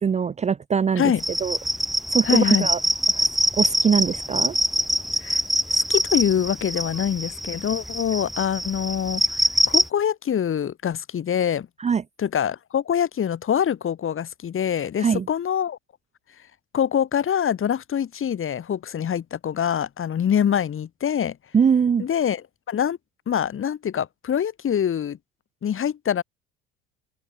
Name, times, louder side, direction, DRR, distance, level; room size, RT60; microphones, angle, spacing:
voice 1, 0.0-1.0 1.4-1.6 2.1-2.8 3.1-3.3 3.6-4.6 11.8-12.0 15.0-15.3 21.5-22.1, right 6 dB, 20° right, 0.7 m, -22 dB
sound 1, 1.2-9.9, equal, ahead, 6.2 m, -24 dB
voice 2, 2.2-2.7 5.2-5.4 5.7-9.4 9.7-11.7 12.2-15.8 16.7-21.4 22.0-23.0 23.3-25.2 25.6-26.2, left 9 dB, 40° left, 7.9 m, -24 dB
open air
figure-of-eight pair, 65°, 33 cm